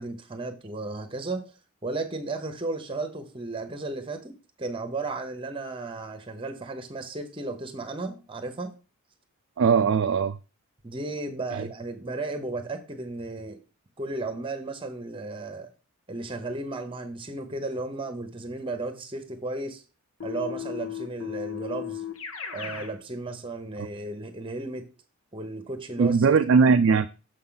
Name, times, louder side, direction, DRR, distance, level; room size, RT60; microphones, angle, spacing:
voice 1, 0.0-1.5 1.8-8.7 10.8-13.6 14.0-15.7 16.1-19.8 20.2-22.0 22.5-24.9 25.3-26.4, right 2 dB, 25° right, 1.0 m, -34 dB
voice 2, 9.6-10.4 11.5-11.7 26.0-27.1, right 5 dB, 60° right, 0.3 m, -20 dB
Keyboard (musical), 20.2-22.9, left 9 dB, 75° left, 1.3 m, -35 dB
6.7 x 5.5 x 3.9 m
head